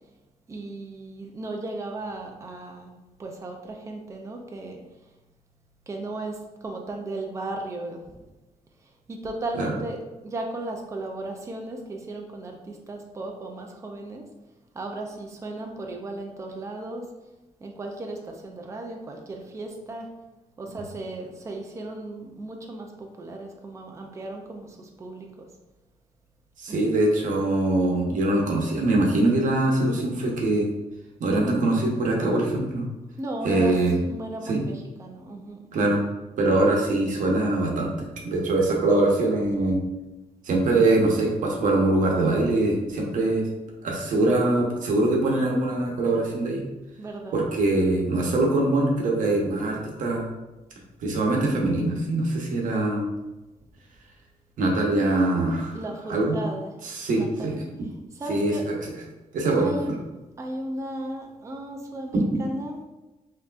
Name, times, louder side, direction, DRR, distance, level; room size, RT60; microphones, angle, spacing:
voice 1, 0.5-2.9 3.2-4.8 5.9-8.2 9.1-14.2 14.7-17.1 17.6-20.1 20.6-25.5 26.7-27.0 33.2-33.7 34.1-35.7 47.0-47.5 55.7-56.7 57.1-57.5 58.1-58.6 59.5-59.9 60.4-62.8, right 2 dB, 25° right, 1 dB, 0.5 m, -35 dB
voice 2, 26.6-30.7 31.2-32.8 33.4-34.0 34.4-34.6 35.7-36.0 36.4-39.8 40.4-43.4 43.8-46.6 47.3-50.3 51.0-53.1 54.6-55.8 56.1-56.4 56.8-57.6 58.3-58.8 59.3-59.7 62.1-62.4, right 2 dB, 90° right, -1 dB, 0.9 m, -23 dB
5.6 x 2.8 x 2.4 m, 1.1 s
wide cardioid pair, 145°, 13 cm